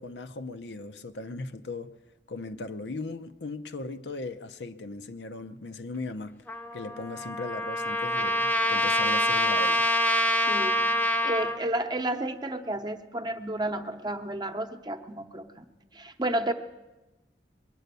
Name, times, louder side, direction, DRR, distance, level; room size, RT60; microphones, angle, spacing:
voice 1, 0.0-1.9 2.3-6.4 6.7-9.9, left 3 dB, 75° left, 0.7 m, -38 dB
Trumpet, 6.5-11.6, equal, 10° left, 0.7 m, -26 dB
voice 2, 10.5-16.5, right 1 dB, 25° right, 0.8 m, -32 dB
22.0 x 9.2 x 6.8 m
head